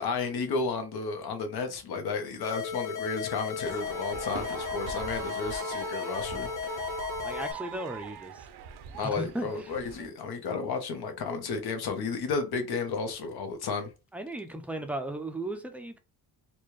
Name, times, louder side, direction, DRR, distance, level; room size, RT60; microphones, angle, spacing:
voice 1, 0.0-6.5 9.0-13.9, left 4 dB, 75° left, 1.0 m, -32 dB
sound 1, 2.4-7.5, left 7 dB, 55° left, 0.9 m, -35 dB
sound 2, 3.6-10.1, right 9 dB, 85° right, 0.6 m, -41 dB
voice 2, 7.2-8.3 9.2-9.5 14.1-16.0, right 1 dB, 5° right, 0.4 m, -35 dB
4.2 x 2.3 x 3.1 m
wide cardioid pair, 165°, 38 cm